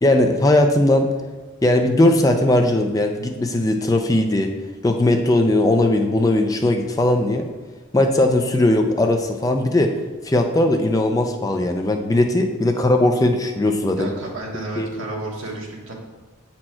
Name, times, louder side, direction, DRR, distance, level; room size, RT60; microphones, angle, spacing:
voice 1, 0.0-1.1 1.6-4.5 4.8-7.5 7.9-9.9 10.2-14.1 14.8-14.9, left 1 dB, 15° left, 5 dB, 0.4 m, -18 dB
voice 2, 13.9-15.9, right 2 dB, 80° right, -1 dB, 1.4 m, -31 dB
7.5 x 4.4 x 4.3 m, 1.3 s
head